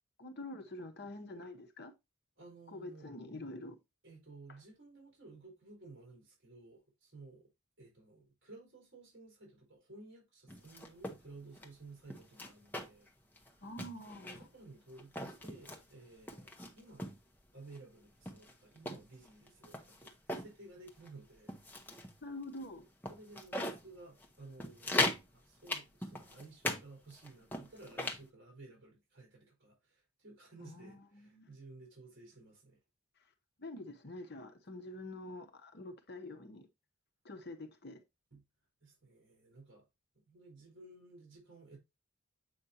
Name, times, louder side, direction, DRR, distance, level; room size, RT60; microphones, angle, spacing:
voice 1, 0.2-1.9 2.7-3.8 13.6-14.5 22.2-22.9 30.6-31.4 33.6-36.7 37.2-38.0, left 1 dB, 50° left, 0.9 m, -46 dB
voice 2, 2.4-3.1 4.0-7.5 7.8-13.1 13.5-13.6 14.4-17.1 17.5-21.5 23.1-25.0 25.3-32.8 38.3-38.4 38.8-39.9 40.1-41.8, right 3 dB, 55° right, 4.2 m, -55 dB
sound 1, 10.5-11.2 11.6-11.7 12.1-13.1 13.4-13.5 13.8-14.5 15.0-15.8 16.3-17.2 17.7-17.8 18.3-20.5 20.9-21.1 21.5-22.1 22.6-22.7 23.0-23.8 24.2-24.3 24.6-25.3 25.7-26.8 27.1-28.2, left 1 dB, 10° left, 0.8 m, -38 dB
7.8 x 5.1 x 2.8 m
head